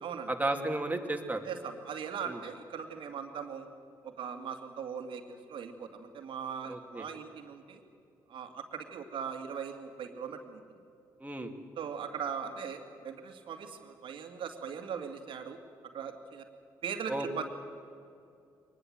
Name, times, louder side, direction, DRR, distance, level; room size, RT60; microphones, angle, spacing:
voice 1, 0.3-1.4 2.3-2.4 6.7-7.0 11.2-11.5 17.1-17.3, right 2 dB, 15° right, 3 dB, 2.8 m, -33 dB
voice 2, 1.4-3.7 4.0-7.8 8.3-10.6 11.8-15.6 15.9-16.4 16.8-17.5, right 7 dB, 60° right, 5 dB, 2.3 m, -40 dB
23.0 x 20.5 x 7.8 m, 2.6 s
hypercardioid pair, 45°, 10 cm